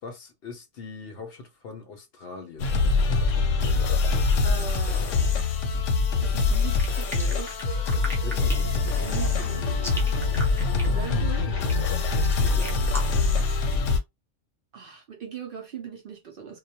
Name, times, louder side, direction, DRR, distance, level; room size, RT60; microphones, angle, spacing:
voice 1, 0.0-2.8 7.9-9.0 10.4-10.8 12.4-13.0, left 4 dB, 60° left, 0.7 m, -42 dB
sound 1, 2.6-14.0, left 4 dB, 90° left, 0.9 m, -24 dB
voice 2, 4.4-5.4 6.2-7.6 8.3-8.5 9.0-10.2 10.8-11.8 14.7-16.6, right 7 dB, 60° right, 0.6 m, -40 dB
sound 2, 6.8-13.3, equal, 5° left, 0.3 m, -37 dB
sound 3, 7.7-13.7, right 3 dB, 85° right, 1.0 m, -43 dB
2.2 x 2.1 x 2.8 m
omnidirectional pair, 1.3 m